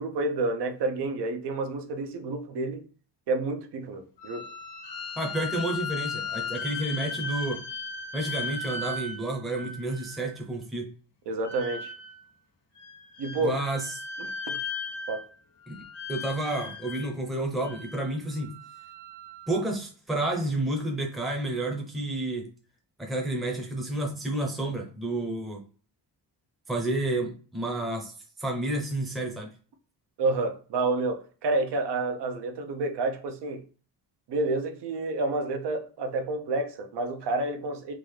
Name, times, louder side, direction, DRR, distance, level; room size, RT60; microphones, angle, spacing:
voice 1, 0.0-2.9 3.3-4.5 11.3-11.9 13.2-13.6 14.2-14.6 15.1-15.3 30.2-33.6 34.3-37.9, right 2 dB, 75° right, 0.7 m, -29 dB
sound 1, 4.2-10.4 11.4-12.3 12.7-15.4 15.6-17.1 17.6-19.7, left 3 dB, 85° left, 1.7 m, -37 dB
voice 2, 5.2-7.6 8.1-10.9 13.4-13.9 15.7-15.8 16.1-18.5 19.5-22.5 23.0-25.6 26.7-28.1 28.4-29.5, right 2 dB, ahead, 0.6 m, -30 dB
3.7 x 2.4 x 3.2 m
wide cardioid pair, 155°, 42 cm